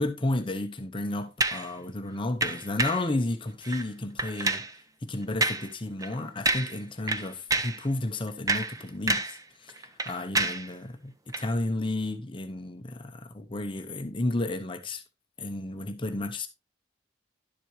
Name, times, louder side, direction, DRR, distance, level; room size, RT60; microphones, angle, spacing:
voice 1, 0.0-4.7 5.0-15.0 15.4-16.5, left 2 dB, 25° left, 0.7 m, -32 dB
sound 1, 1.4-1.7 2.4-3.1 3.6-3.9 4.2-4.7 5.4-5.7 6.0-6.1 6.5-6.8 7.1-7.8 8.3-9.4 9.7-10.7 11.3-11.5, right 2 dB, 20° right, 0.7 m, -28 dB
11.0 x 7.5 x 3.1 m
head